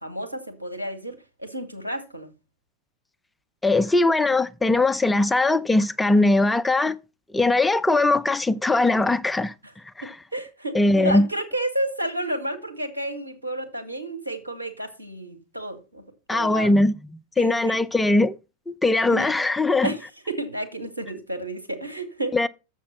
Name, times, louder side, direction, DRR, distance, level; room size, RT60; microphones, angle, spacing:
voice 1, 0.0-2.3 9.6-9.7 10.0-16.0 16.3-16.7 17.4-17.8 19.1-19.4 19.8-22.4, right 1 dB, 85° right, 1.7 m, -31 dB
voice 2, 3.6-7.0 7.3-9.5 10.0-10.2 10.7-11.3 16.3-16.9 17.4-18.4 18.7-19.9 22.3-22.5, left 2 dB, 5° left, 0.4 m, -20 dB
7.2 x 7.2 x 5.7 m
figure-of-eight pair, 90°, 0 cm